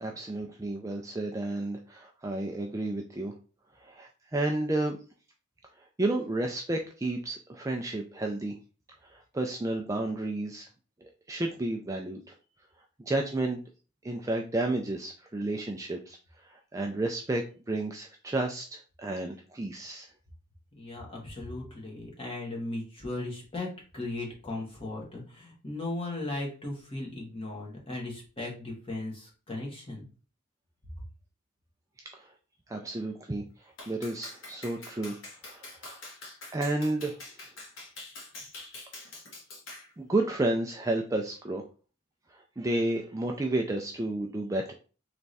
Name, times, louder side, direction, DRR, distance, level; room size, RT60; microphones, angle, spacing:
voice 1, 0.0-3.3 3.8-5.0 6.0-8.6 9.0-10.7 11.0-12.2 13.0-13.6 14.0-16.2 16.4-20.1 32.1-32.3 32.7-35.1 35.4-36.0 36.5-37.2 40.0-41.6 42.3-44.7, right 2 dB, 15° right, 2 dB, 0.4 m, -31 dB
voice 2, 20.8-23.7 23.9-30.1, left 2 dB, 25° left, -2 dB, 1.5 m, -37 dB
Clapping, 33.8-39.9, left 2 dB, 60° left, 1.6 m, -45 dB
3.5 x 3.2 x 4.0 m, 0.36 s
head